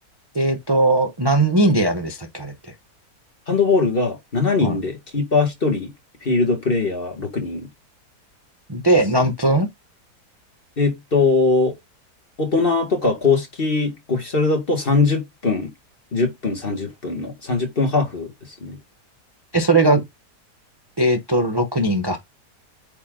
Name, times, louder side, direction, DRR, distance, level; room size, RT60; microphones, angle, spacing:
voice 1, 0.3-2.7 4.6-4.8 8.7-9.7 19.5-20.0 21.0-22.2, right 2 dB, 20° right, 0.7 m, -19 dB
voice 2, 3.5-5.9 6.2-7.7 10.8-11.7 12.4-15.7 16.1-18.3 18.6-18.8, left 3 dB, 35° left, 2.1 m, -21 dB
8.6 x 3.6 x 3.8 m
omnidirectional pair, 1.8 m